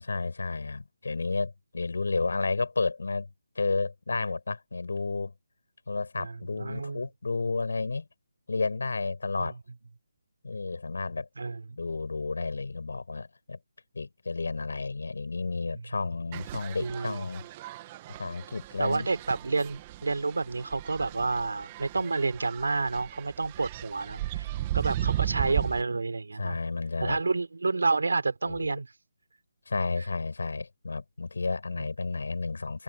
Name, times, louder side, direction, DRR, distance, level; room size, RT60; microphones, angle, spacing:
voice 1, 0.0-3.3 3.6-5.3 5.9-8.1 8.5-9.6 10.4-11.3 11.8-13.6 13.9-17.5 18.1-19.1 25.0-26.0 26.4-27.2 28.5-28.8 29.7-32.8, left 3 dB, 80° left, 5.9 m, -32 dB
voice 2, 6.2-7.0 9.4-9.5 11.4-11.6 16.8-17.2 18.8-24.5 24.7-26.6 27.0-28.9, right 3 dB, 85° right, 3.9 m, -29 dB
sound 1, 16.3-25.8, right 14 dB, 20° right, 1.9 m, -36 dB
hypercardioid pair, 170°, 0 cm